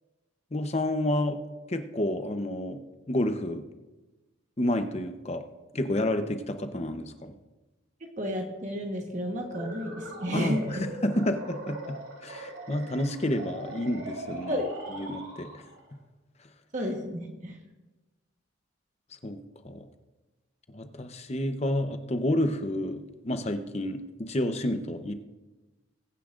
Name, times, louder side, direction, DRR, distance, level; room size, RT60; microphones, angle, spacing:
voice 1, 0.5-1.4 1.7-2.8 3.1-3.6 4.6-5.4 5.7-7.3 10.3-11.8 12.2-14.6 14.9-15.6 19.2-19.4 19.6-19.9 20.7-25.1, left 1 dB, 30° left, 8 dB, 0.8 m, -29 dB
voice 2, 8.2-10.6 14.5-14.7 16.7-17.6, equal, 35° right, 2 dB, 1.2 m, -32 dB
sound 1, 9.4-15.9, right 1 dB, 75° right, 3.4 m, -40 dB
21.5 x 10.0 x 2.5 m, 1.1 s
head